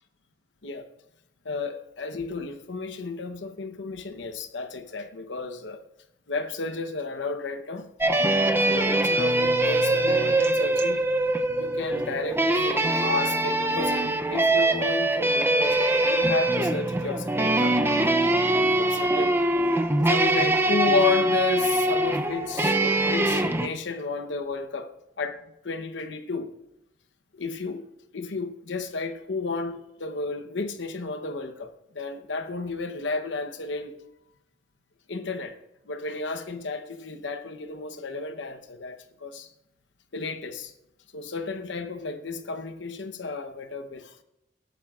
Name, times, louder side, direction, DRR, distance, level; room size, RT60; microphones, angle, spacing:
voice 1, 1.4-5.8 6.3-7.9 8.7-11.0 11.6-18.2 18.4-19.3 20.0-24.9 25.2-26.5 27.3-27.8 28.1-33.9 35.1-35.6 35.9-39.5 40.1-40.7 41.1-44.2, left 4 dB, 65° left, 1.0 m, -32 dB
sound 1, 8.0-23.7, right 1 dB, 10° right, 0.5 m, -23 dB
18.5 x 12.0 x 2.5 m
head